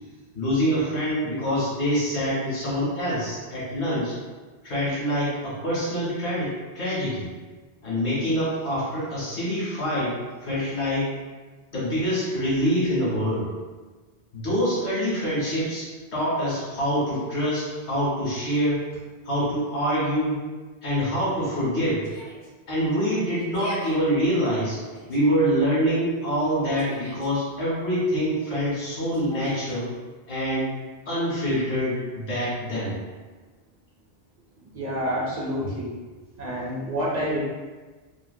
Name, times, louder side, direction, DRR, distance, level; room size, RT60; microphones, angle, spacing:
voice 1, 0.3-4.1 4.6-7.3 7.8-10.1 10.4-11.1 11.7-13.5 14.3-18.8 19.2-20.4 20.8-22.1 22.7-24.8 25.1-29.9 30.3-30.7 31.0-33.0, equal, 80° left, -13 dB, 1.7 m, -25 dB
Yell, 22.0-22.5 23.4-23.9 24.7-25.2 26.4-27.3 29.1-29.7, left 1 dB, 65° left, 0.8 m, -41 dB
voice 2, 34.7-35.9 36.3-37.4, equal, 50° right, -5 dB, 0.5 m, -28 dB
3.1 x 2.2 x 2.5 m, 1.3 s
omnidirectional pair, 1.1 m